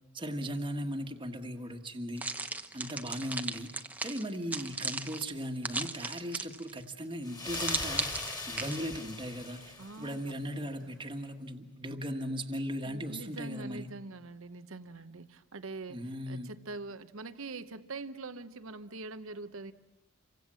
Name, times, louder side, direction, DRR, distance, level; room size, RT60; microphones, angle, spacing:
voice 1, 0.1-2.3 2.7-3.7 4.0-13.9 15.9-16.5, equal, 20° right, 3 dB, 1.6 m, -38 dB
sound 1, 2.2-6.8 7.5-8.8, right 2 dB, 5° right, 1.0 m, -36 dB
sound 2, 7.2-10.3, left 3 dB, 20° left, 2.7 m, -40 dB
voice 2, 9.8-10.2 10.6-11.0 12.8-16.0 16.3-19.7, right 3 dB, 65° right, 12 dB, 0.9 m, -43 dB
28.0 x 24.5 x 7.6 m, 0.93 s
head